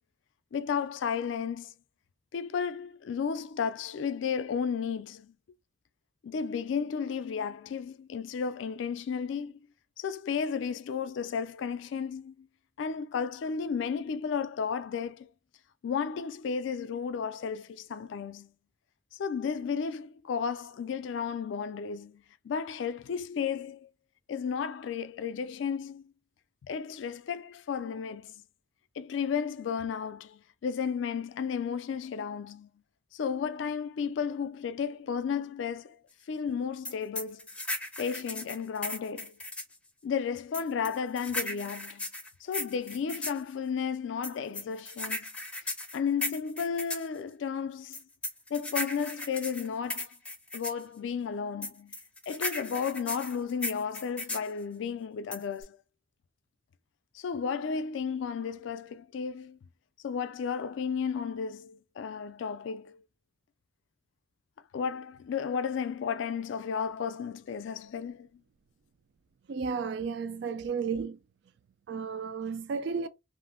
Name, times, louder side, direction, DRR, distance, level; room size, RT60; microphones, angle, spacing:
voice 1, 0.5-1.7 2.3-5.3 6.2-9.5 10.0-12.5 12.8-15.3 15.8-18.5 19.2-23.9 24.3-26.0 26.6-28.4 29.0-32.7 33.1-36.0 36.3-37.5 38.0-39.4 40.0-42.1 42.4-45.3 45.9-48.0 48.5-50.1 50.5-51.9 52.3-55.8 57.1-59.6 60.0-63.0 64.7-68.3, left 6 dB, 80° left, 0.3 m, -33 dB
sound 1, 36.9-39.8 40.5-43.4 44.2-47.1 47.9-50.8 51.6-54.5 55.3-55.6, left 2 dB, 5° left, 0.5 m, -36 dB
voice 2, 69.5-71.2 71.9-73.1, right 5 dB, 65° right, 0.3 m, -33 dB
2.5 x 2.0 x 3.6 m
head